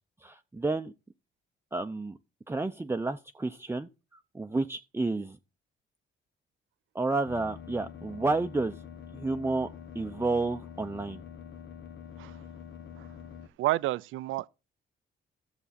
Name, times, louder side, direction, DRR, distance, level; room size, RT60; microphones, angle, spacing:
voice 1, 0.2-0.9 1.7-2.2 2.5-5.4 6.9-8.7 9.1-9.7 9.9-11.2, right 3 dB, 10° right, 0.6 m, -31 dB
sound 1, 7.2-13.5, left 8 dB, 65° left, 1.1 m, -46 dB
voice 2, 13.6-14.5, right 16 dB, 85° right, 0.5 m, -30 dB
13.5 x 6.9 x 4.2 m
cardioid pair, 90°, 20 cm